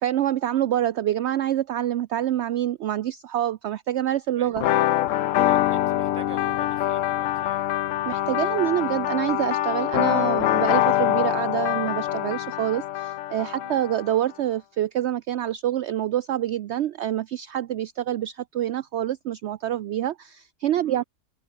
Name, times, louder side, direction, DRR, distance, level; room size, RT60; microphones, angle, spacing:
voice 1, 0.0-4.6 8.1-21.0, right 12 dB, 70° right, 0.6 m, -26 dB
voice 2, 4.3-4.9 5.5-7.7 13.6-13.8 20.8-21.0, right 5 dB, 25° right, 0.9 m, -45 dB
sound 1, 4.6-14.2, left 13 dB, 65° left, 0.8 m, -24 dB
omnidirectional pair, 1.7 m